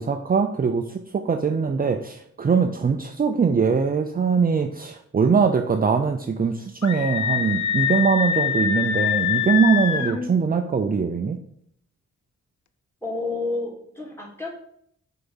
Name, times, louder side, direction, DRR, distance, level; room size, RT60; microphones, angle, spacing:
voice 1, 0.0-11.4, right 5 dB, 30° right, 5 dB, 0.6 m, -22 dB
Screaming, 6.8-10.2, left 9 dB, 75° left, 0.7 m, -24 dB
voice 2, 10.0-10.6 13.0-14.5, left 3 dB, 10° left, -1 dB, 2.8 m, -30 dB
6.7 x 4.8 x 5.5 m, 0.68 s
cardioid pair, 85°, 29 cm